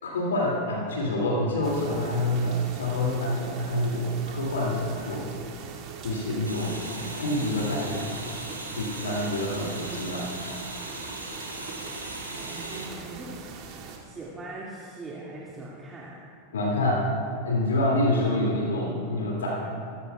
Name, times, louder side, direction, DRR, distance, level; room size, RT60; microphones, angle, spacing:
voice 1, 0.0-5.3 6.0-6.8 7.2-8.2 8.7-10.3 16.5-17.0 17.4-19.6, left 1 dB, 65° left, -3 dB, 2.4 m, -27 dB
sound 1, 1.6-14.0, right 5 dB, 35° right, 2.4 m, -42 dB
sound 2, 6.4-12.9, right 1 dB, 85° right, 2.4 m, -38 dB
voice 2, 12.4-13.3 14.0-16.2, right 2 dB, 15° right, -6 dB, 2.0 m, -41 dB
24.5 x 16.0 x 2.3 m, 2.3 s
figure-of-eight pair, 90°, 0 cm